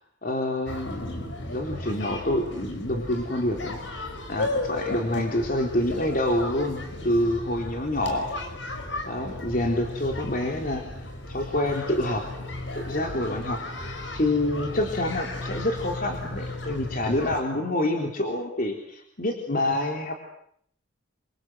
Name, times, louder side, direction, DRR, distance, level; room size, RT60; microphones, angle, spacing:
voice 1, 0.2-8.3 9.0-12.3 12.8-20.1, left 1 dB, 45° left, 2 dB, 3.7 m, -27 dB
sound 1, 0.7-17.4, left 2 dB, 70° left, 5.8 m, -35 dB
28.0 x 26.0 x 8.0 m, 0.68 s
head